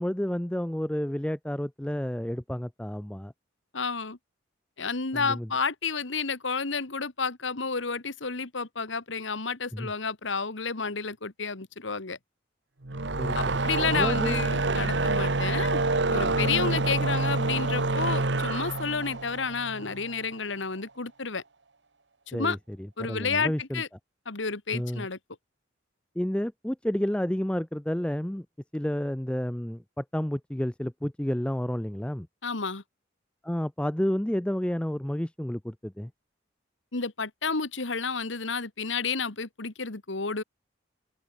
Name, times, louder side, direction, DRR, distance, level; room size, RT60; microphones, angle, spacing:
voice 1, 0.0-3.3 5.1-5.5 9.7-9.9 13.2-13.4 13.9-14.4 16.2-16.5 22.3-23.8 24.7-25.1 26.2-28.5 28.7-32.3 33.4-36.1, equal, 5° left, 0.5 m, -30 dB
voice 2, 3.7-4.2 4.8-12.2 13.3-15.8 16.1-21.4 22.3-22.6 23.0-23.9 24.2-25.2 32.4-32.8 36.9-40.4, left 5 dB, 80° left, 1.8 m, -31 dB
sound 1, 12.8-20.2, right 3 dB, 65° right, 1.5 m, -27 dB
open air
head